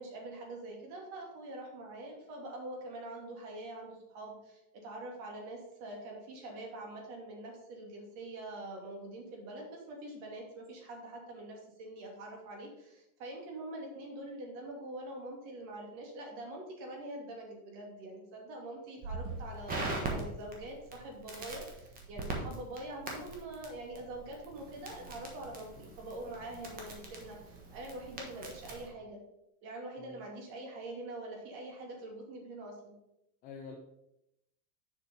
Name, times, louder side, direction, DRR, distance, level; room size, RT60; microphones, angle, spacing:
voice 1, 0.0-29.2 29.6-32.9, right 1 dB, 50° right, 1 dB, 2.4 m, -44 dB
Crackle, 19.0-28.9, right 3 dB, 20° right, 1.2 m, -42 dB
voice 2, 25.5-25.9 30.0-30.3 33.4-33.8, left 5 dB, 20° left, 2 dB, 0.4 m, -49 dB
6.9 x 5.5 x 5.5 m, 0.85 s
supercardioid pair, 175°, 43 cm